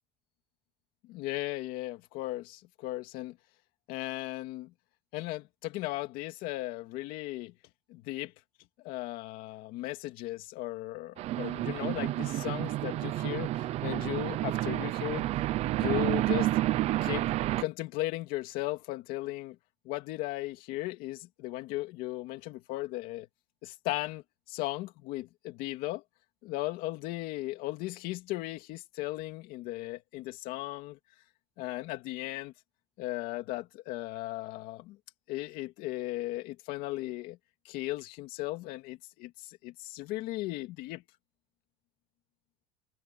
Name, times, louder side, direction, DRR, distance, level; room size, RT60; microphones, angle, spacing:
voice 1, 1.0-3.4 3.9-4.7 5.1-7.5 7.9-8.3 8.8-15.3 15.8-16.5 17.0-17.3 17.6-19.6 19.8-23.3 23.6-26.0 26.4-31.0 31.6-32.5 33.0-35.0 35.3-37.4 37.6-41.0, left 18 dB, 55° left, 2.4 m, -36 dB
sound 1, 11.2-17.6, right 15 dB, 35° right, 0.6 m, -30 dB
cardioid pair, 175°, 18 cm